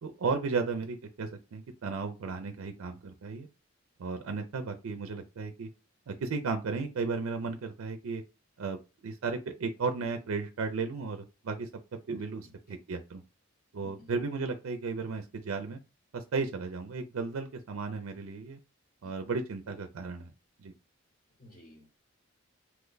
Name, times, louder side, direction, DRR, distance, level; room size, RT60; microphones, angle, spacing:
voice 1, 0.0-3.5 4.0-5.7 6.1-8.2 8.6-11.7 12.1-13.2 13.7-15.8 16.1-18.6 19.0-20.3 20.6-20.7, right 4 dB, 75° right, 0.4 m, -34 dB
voice 2, 13.8-14.1 19.0-19.1 21.4-21.9, left 1 dB, 40° left, 0.7 m, -54 dB
2.8 x 2.2 x 3.8 m
head